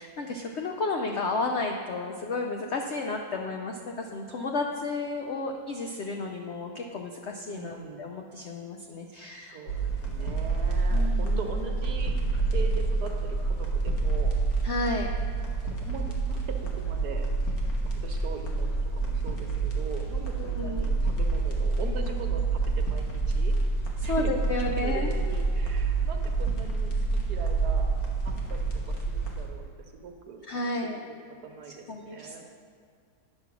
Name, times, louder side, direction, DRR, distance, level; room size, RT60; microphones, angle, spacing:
voice 1, 0.0-9.6 10.9-11.4 14.6-15.1 20.4-20.9 24.0-25.1 30.5-31.0 31.9-32.4, left 3 dB, 80° left, 2 dB, 0.6 m, -32 dB
voice 2, 7.5-8.0 9.2-14.4 15.6-17.3 17.8-23.5 24.0-24.3 24.8-27.9 28.2-29.6 29.9-31.1 31.4-32.4, right 5 dB, 65° right, 3 dB, 1.3 m, -41 dB
sound 1, 9.7-29.5, right 3 dB, 55° left, 1.6 m, -28 dB
9.9 x 5.4 x 6.0 m, 2.2 s
omnidirectional pair, 2.0 m